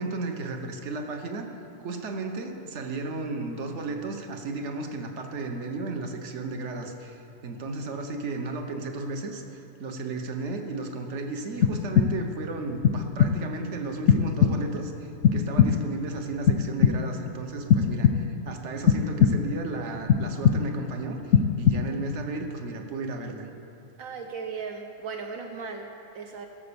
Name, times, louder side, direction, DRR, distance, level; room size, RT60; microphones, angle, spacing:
voice 1, 0.0-1.5 1.8-23.5, right 3 dB, 60° right, 4 dB, 1.3 m, -34 dB
sound 1, 11.6-12.4 12.8-13.6 14.1-14.9 15.2-16.0 16.5-17.3 17.7-18.5 18.9-19.7 20.1-20.9 21.3-22.1, left 7 dB, 65° left, 0.7 m, -22 dB
voice 2, 24.0-26.5, right 5 dB, 80° right, 3 dB, 1.2 m, -37 dB
16.0 x 7.1 x 6.9 m, 2.8 s
omnidirectional pair, 1.4 m